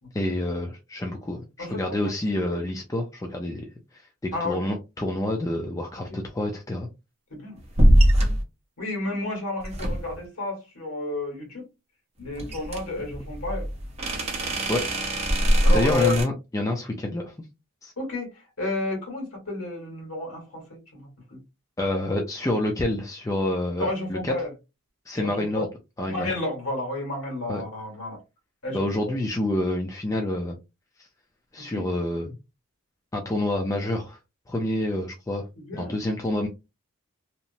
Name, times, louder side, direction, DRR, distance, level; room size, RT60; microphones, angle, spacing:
voice 1, 0.1-6.9 14.7-14.8 15.7-17.3 17.8-17.9 21.8-24.3 25.1-25.7 26.0-26.3 27.5-27.6 28.7-30.6 31.0-31.1 31.5-32.4 33.1-34.2 34.5-35.5 35.7-36.5, left 1 dB, 15° left, 0.3 m, -28 dB
sound 1, 7.8-8.4 9.6-10.3 12.4-16.3, equal, 30° right, 0.7 m, -22 dB
voice 2, 8.8-11.7 12.2-13.7 15.6-16.2 18.0-21.4 23.8-24.5 25.1-25.7 26.1-28.2 28.6-29.1 31.6-31.8 35.5-36.0, left 2 dB, 80° left, 1.5 m, -31 dB
2.8 x 2.0 x 2.6 m
head